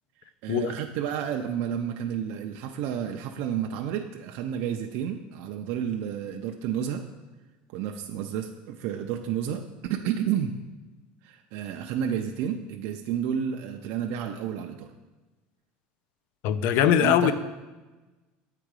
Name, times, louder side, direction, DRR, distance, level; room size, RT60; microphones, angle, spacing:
voice 1, 0.4-7.0 7.7-10.5 11.2-14.9 17.0-17.3, right 9 dB, 55° right, 3 dB, 0.4 m, -31 dB
voice 2, 16.4-17.3, left 10 dB, 55° left, 13 dB, 0.4 m, -21 dB
8.1 x 3.8 x 4.7 m, 1.2 s
cardioid pair, 170°, 4 cm